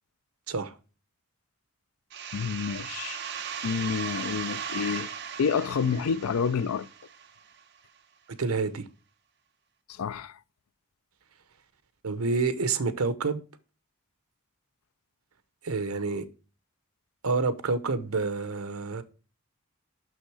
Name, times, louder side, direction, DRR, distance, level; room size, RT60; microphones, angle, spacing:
sound 1, 2.1-7.6, right 7 dB, 50° right, 0.9 m, -37 dB
voice 1, 2.3-3.2 3.6-5.1 5.4-6.9 9.9-10.4, left 6 dB, 85° left, 0.4 m, -29 dB
voice 2, 8.4-8.8 12.0-13.4 15.6-16.2 17.2-19.0, right 4 dB, 85° right, 0.9 m, -28 dB
6.3 x 6.3 x 4.7 m
head